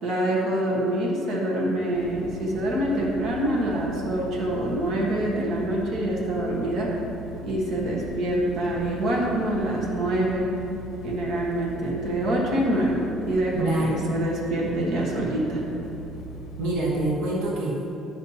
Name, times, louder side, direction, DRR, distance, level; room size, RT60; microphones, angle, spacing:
voice 1, 0.0-6.9 7.4-10.5 11.0-13.0 13.3-15.6, right 1 dB, 50° right, -4 dB, 1.3 m, -25 dB
sound 1, 1.9-17.1, right 1 dB, 60° left, 0.7 m, -41 dB
voice 2, 13.5-14.1 16.6-17.9, right 2 dB, 85° right, -4 dB, 1.1 m, -26 dB
9.7 x 6.3 x 2.8 m, 2.9 s
cardioid pair, 175°, 0 cm